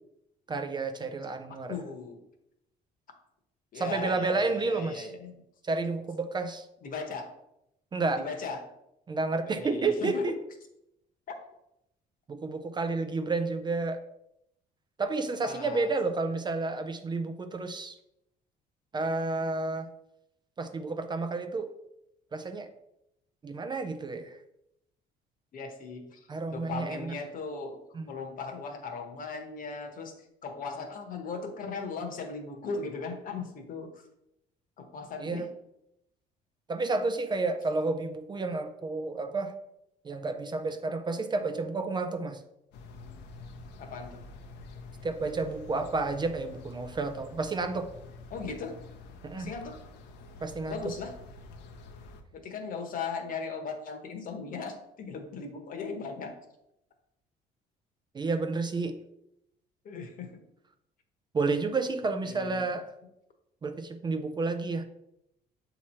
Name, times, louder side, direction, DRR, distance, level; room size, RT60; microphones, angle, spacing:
voice 1, 0.5-1.8 3.7-5.1 5.6-6.7 7.9-8.3 9.1-10.4 12.3-14.0 15.0-17.9 18.9-19.9 20.6-21.7 22.3-22.7 23.4-24.4 26.3-27.1 27.9-28.1 35.2-35.5 36.7-39.5 40.0-42.4 45.0-47.9 49.2-49.5 50.4-50.8 58.1-59.0 61.3-62.9 63.6-64.8, right 3 dB, 25° right, 8 dB, 0.5 m, -31 dB
voice 2, 1.7-2.3 3.7-5.3 6.8-7.3 8.1-8.6 9.5-10.3 15.4-15.9 25.5-30.1 30.4-34.0 34.8-35.5 43.8-44.2 48.3-48.8 49.3-49.8 50.7-51.1 52.3-56.3 59.8-60.4 62.1-62.6, left 4 dB, 55° left, 5 dB, 1.1 m, -38 dB
sound 1, 42.7-52.2, left 3 dB, 85° left, 0.8 m, -48 dB
7.3 x 3.0 x 4.3 m, 0.82 s
cardioid pair, 110°, 17 cm